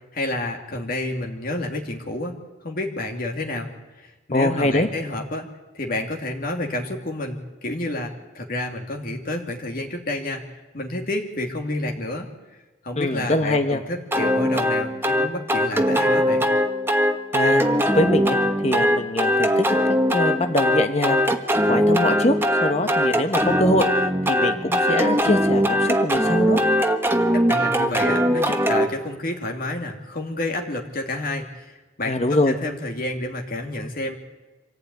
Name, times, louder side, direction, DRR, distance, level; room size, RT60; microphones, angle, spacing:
voice 1, 0.1-2.4 2.6-3.7 4.0-5.5 5.7-12.3 12.8-16.4 27.5-34.2, left 1 dB, 55° left, 1 dB, 2.4 m, -29 dB
voice 2, 4.3-4.9 13.0-13.8 17.3-18.4 18.6-19.6 20.1-21.2 21.6-26.6 32.0-32.6, left 1 dB, 40° left, 6 dB, 1.2 m, -23 dB
sound 1, 14.1-28.9, equal, 15° right, 1.4 m, -20 dB
25.5 x 15.5 x 9.4 m, 1.2 s
head